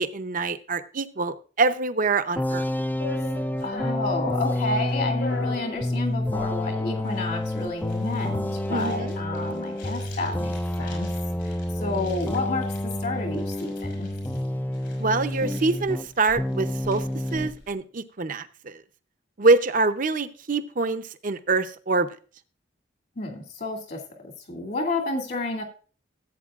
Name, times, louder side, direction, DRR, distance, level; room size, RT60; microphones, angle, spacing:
voice 1, 0.0-2.6 8.7-9.2 15.0-17.0 17.3-18.8 19.4-22.1, right 3 dB, 45° right, 10 dB, 0.7 m, -25 dB
sound 1, 2.4-16.1 16.4-17.6, left 1 dB, 10° left, 0.4 m, -29 dB
sound 2, 3.0-17.7, left 3 dB, 75° left, 5.5 m, -43 dB
voice 2, 3.6-11.1 11.4-14.1 23.2-25.6, left 2 dB, 60° left, 1 dB, 2.2 m, -30 dB
15.0 x 8.2 x 2.4 m, 0.37 s
head